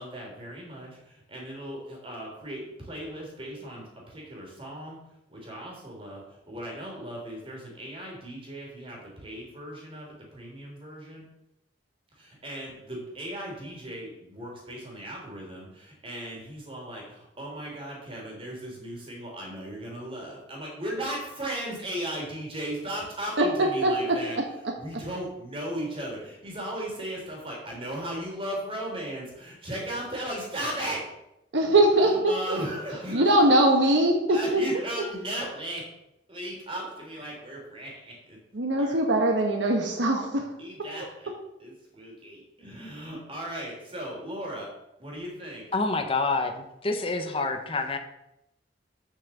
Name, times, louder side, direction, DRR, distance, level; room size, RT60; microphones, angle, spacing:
voice 1, 0.0-5.0 5.3-11.2 12.1-24.4 24.8-31.1 31.7-33.2 34.3-35.9 36.3-38.4 38.8-38.9 40.6-41.3 41.6-44.7 45.0-45.7, right 1 dB, 30° right, -2 dB, 3.3 m, -37 dB
voice 2, 23.8-24.2 31.5-32.6 33.1-34.6 38.5-40.5, right 1 dB, 85° right, 2 dB, 1.2 m, -22 dB
voice 3, 45.7-48.0, left 3 dB, 30° left, 5 dB, 0.9 m, -27 dB
7.3 x 5.7 x 7.1 m, 0.85 s
head